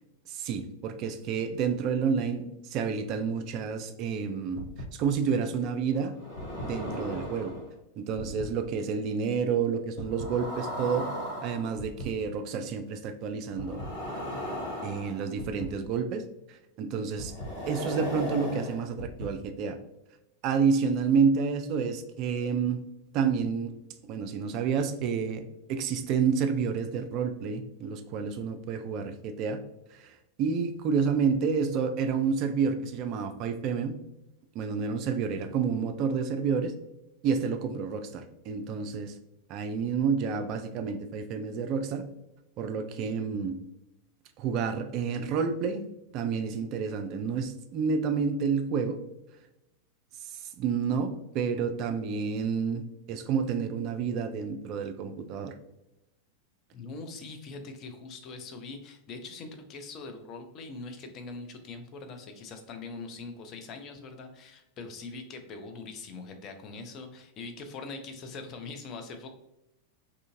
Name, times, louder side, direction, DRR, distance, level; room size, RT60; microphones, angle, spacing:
voice 1, 0.3-4.6 4.9-6.1 6.6-7.5 8.0-11.1 11.4-13.8 14.8-16.2 16.8-17.3 17.7-19.8 20.4-22.8 23.1-23.7 24.1-25.4 25.7-29.6 30.0-30.1 30.4-34.0 34.6-36.7 37.2-39.1 39.5-42.0 42.6-43.6 44.4-45.9 46.1-49.0 50.2-55.5, right 6 dB, 40° right, 7 dB, 0.3 m, -29 dB
sound 1, 4.6-4.8 6.1-7.7 8.2-8.4 10.0-12.0 13.6-15.6 17.2-19.2, equal, 60° left, 1.2 m, -36 dB
voice 2, 56.7-69.3, left 3 dB, 35° left, 5 dB, 0.4 m, -42 dB
2.6 x 2.5 x 2.6 m, 0.89 s
figure-of-eight pair, 90°, 0 cm